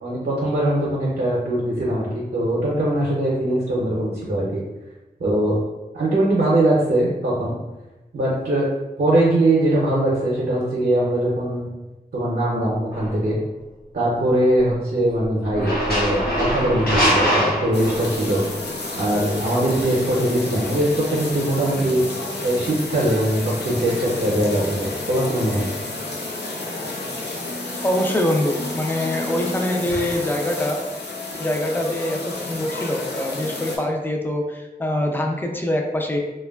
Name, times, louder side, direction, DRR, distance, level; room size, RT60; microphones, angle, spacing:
voice 1, 0.0-4.6 5.2-5.6 5.9-7.6 8.1-8.7 9.0-11.7 12.1-13.4 13.9-18.4 18.9-22.0 22.4-25.7, right 1 dB, 65° right, -5 dB, 0.6 m, -21 dB
sound 1, 12.9-13.2 15.4-18.3, equal, 65° left, 1.0 m, -22 dB
sound 2, 17.7-33.8, left 2 dB, 85° left, 0.5 m, -31 dB
voice 2, 27.8-30.8 31.4-36.2, left 1 dB, 10° left, 2 dB, 0.4 m, -24 dB
2.9 x 2.2 x 2.2 m, 1.1 s
wide cardioid pair, 70°, 17 cm